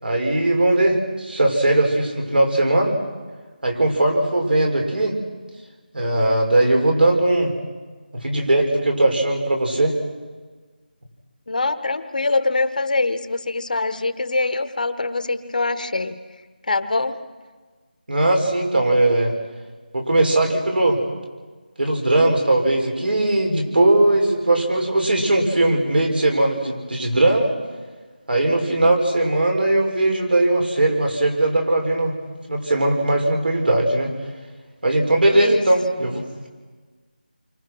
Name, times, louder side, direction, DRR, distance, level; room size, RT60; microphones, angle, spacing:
voice 1, 0.0-3.0 3.6-5.2 5.9-7.5 8.1-10.0 18.1-19.3 19.9-21.0 21.8-27.5 28.3-32.1 32.5-34.1 34.8-36.5, right 1 dB, 70° right, 2 dB, 6.0 m, -19 dB
voice 2, 11.5-16.2 16.7-17.2 35.3-35.6, left 3 dB, 50° left, 11 dB, 1.3 m, -23 dB
28.5 x 25.0 x 6.3 m, 1.4 s
figure-of-eight pair, 170°, 6 cm